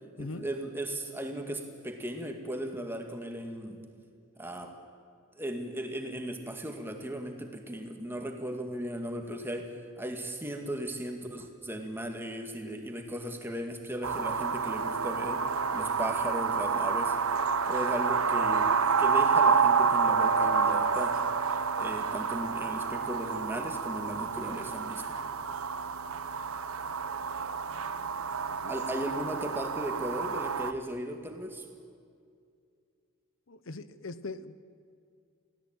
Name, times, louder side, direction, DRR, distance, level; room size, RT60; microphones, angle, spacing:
voice 1, 0.2-3.8 4.4-4.8 5.4-15.5 15.7-17.2 17.7-18.7 19.0-21.3 21.8-25.2 28.7-31.6, right 1 dB, 10° right, 4 dB, 2.0 m, -37 dB
sound 1, 14.0-30.7, right 5 dB, 80° right, 1.0 m, -28 dB
voice 2, 33.5-34.6, left 3 dB, 65° left, 14 dB, 0.9 m, -41 dB
23.0 x 16.5 x 9.0 m, 2.3 s
head